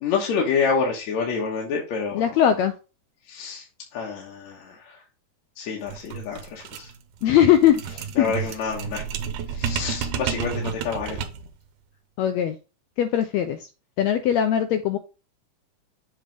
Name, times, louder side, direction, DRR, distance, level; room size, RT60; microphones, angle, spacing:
voice 1, 0.0-2.3 3.3-3.6 3.9-5.0 5.6-6.9 8.2-9.0 9.5-11.2, left 5 dB, 65° left, -1 dB, 2.3 m, -27 dB
voice 2, 2.1-2.7 7.2-8.5 12.2-12.6 13.0-13.7 14.0-15.0, left 10 dB, 80° left, 9 dB, 1.5 m, -20 dB
sound 1, 5.8-11.5, right 7 dB, 80° right, 2.1 m, -31 dB
7.7 x 3.3 x 5.1 m, 0.32 s
omnidirectional pair, 3.6 m